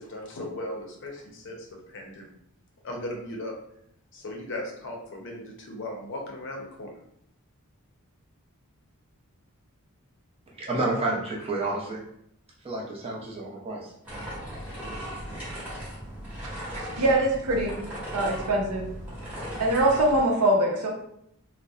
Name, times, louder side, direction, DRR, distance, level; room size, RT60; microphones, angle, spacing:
voice 1, 0.0-2.3 2.8-3.5 4.1-6.9, left 1 dB, 55° left, 0 dB, 0.6 m, -37 dB
voice 2, 10.6-12.0 12.6-13.9, right 2 dB, 25° right, -3 dB, 0.5 m, -30 dB
sound 1, 14.0-20.2, equal, 5° right, 1.0 m, -37 dB
voice 3, 16.7-17.8 18.1-18.9 19.6-20.9, right 1 dB, 85° right, -1 dB, 0.6 m, -23 dB
2.7 x 2.0 x 2.3 m, 0.73 s
head